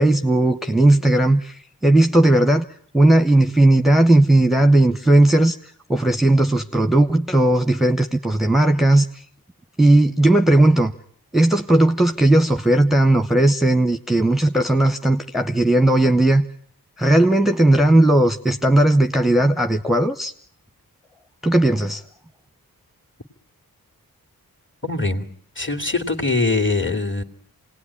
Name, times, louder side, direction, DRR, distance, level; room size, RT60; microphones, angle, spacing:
voice 1, 0.0-2.6 2.9-9.2 9.8-10.9 11.3-16.4 17.0-20.3 21.4-22.0, right 1 dB, ahead, 7 dB, 1.0 m, -16 dB
voice 2, 24.8-25.2 25.6-27.2, left 3 dB, 30° left, 5 dB, 2.6 m, -22 dB
26.0 x 18.5 x 10.0 m, 0.62 s
cardioid pair, 45°, 36 cm